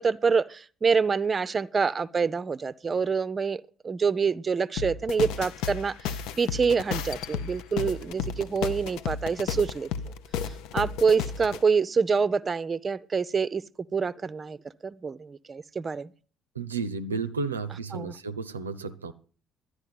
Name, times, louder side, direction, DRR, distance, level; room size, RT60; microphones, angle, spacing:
voice 1, 0.0-10.1 10.7-13.6 13.9-14.6 14.8-16.1 17.9-18.2, right 5 dB, 30° right, 0.5 m, -26 dB
drum glitch, 4.8-11.6, left 7 dB, 65° left, 0.6 m, -33 dB
voice 2, 16.6-19.1, right 4 dB, 85° right, 0.5 m, -32 dB
12.0 x 9.8 x 5.8 m
figure-of-eight pair, 50°, 0 cm